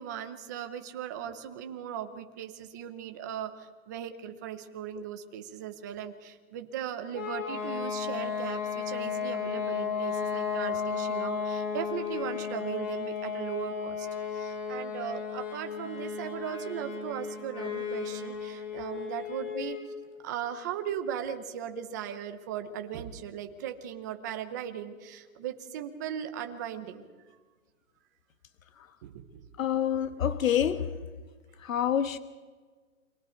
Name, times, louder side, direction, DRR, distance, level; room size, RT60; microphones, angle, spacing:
voice 1, 0.0-19.9 20.2-27.0 29.0-29.5, right 9 dB, 15° right, 8 dB, 0.7 m, -38 dB
sound 1, 7.1-19.9, left 6 dB, 20° left, 2.6 m, -34 dB
voice 2, 29.6-31.0 31.6-32.2, left 9 dB, 70° left, 11 dB, 1.4 m, -27 dB
30.0 x 24.0 x 4.5 m, 1.5 s
hypercardioid pair, 165°, 42 cm